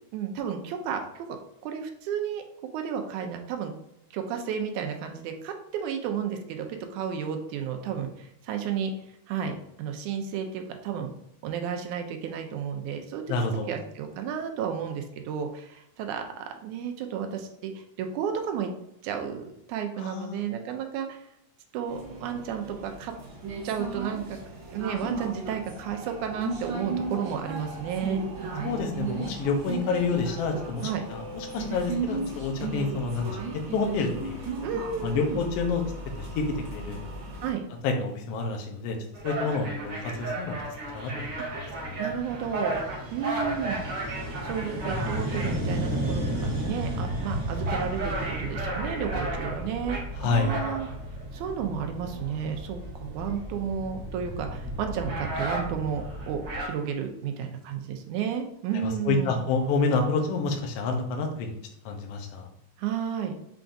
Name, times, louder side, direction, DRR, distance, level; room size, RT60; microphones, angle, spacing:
voice 1, 0.1-1.4 1.6-2.4 2.7-3.7 4.1-8.9 9.3-11.1 11.4-13.2 13.7-18.7 19.0-21.2 21.7-23.1 23.6-24.4 24.7-28.8 30.8-31.0 34.6-35.4 37.4-37.7 39.5-39.6 41.4-41.5 42.0-42.8 43.1-43.8 44.4-50.9 51.3-59.4 62.8-63.3, right 7 dB, 80° right, 5 dB, 2.0 m, -32 dB
voice 2, 13.3-13.7 20.0-20.4 28.6-33.4 33.7-34.5 35.0-35.8 36.2-36.4 36.7-37.0 37.8-39.0 39.2-40.6 40.9-42.0 50.2-50.5 58.7-61.5 61.8-62.5, left 4 dB, 75° left, 3 dB, 1.5 m, -28 dB
sound 1, 21.9-37.5, right 3 dB, 65° right, 1.2 m, -36 dB
sound 2, 39.1-56.7, right 1 dB, 50° right, 1.6 m, -32 dB
5.8 x 3.5 x 2.6 m, 0.81 s
omnidirectional pair, 3.5 m